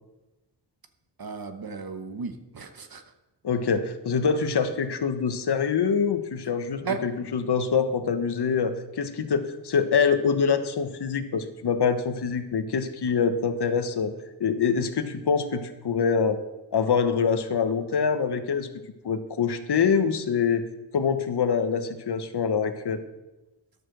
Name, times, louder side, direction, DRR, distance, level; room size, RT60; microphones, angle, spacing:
voice 1, 1.2-3.0 6.8-7.0, right 5 dB, 50° right, 8 dB, 1.1 m, -34 dB
voice 2, 3.4-14.1 14.4-16.5 16.7-18.7 19.0-20.6 20.9-23.0, left 6 dB, 60° left, 10 dB, 1.1 m, -25 dB
10.5 x 6.8 x 6.3 m, 1.0 s
cardioid pair, 65°, 45 cm